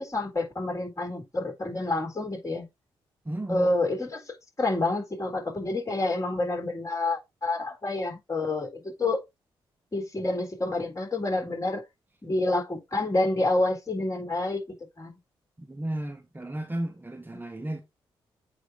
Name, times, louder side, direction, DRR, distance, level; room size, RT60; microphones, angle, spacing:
voice 1, 0.0-2.7 3.5-9.2 9.9-11.8 12.2-14.6 15.0-15.1, left 2 dB, 30° left, 3.8 m, -28 dB
voice 2, 3.2-3.7 15.6-17.8, right 1 dB, 15° right, 1.3 m, -34 dB
8.2 x 3.0 x 5.0 m
hypercardioid pair, 40°, 11 cm